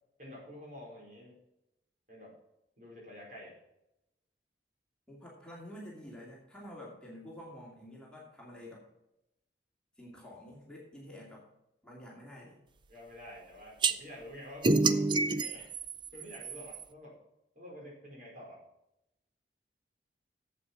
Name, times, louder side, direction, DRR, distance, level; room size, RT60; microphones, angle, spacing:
voice 1, 0.2-1.4 2.1-2.4 2.8-3.6 12.9-15.7 16.1-17.2 17.5-18.6, equal, 50° right, -3 dB, 4.6 m, -48 dB
voice 2, 5.1-8.9 10.0-11.5 11.8-12.6, left 1 dB, 5° left, -4 dB, 2.5 m, -49 dB
sound 1, 13.8-13.9 14.6-16.8, right 3 dB, 25° right, 0.5 m, -28 dB
8.4 x 7.9 x 6.1 m, 0.86 s
head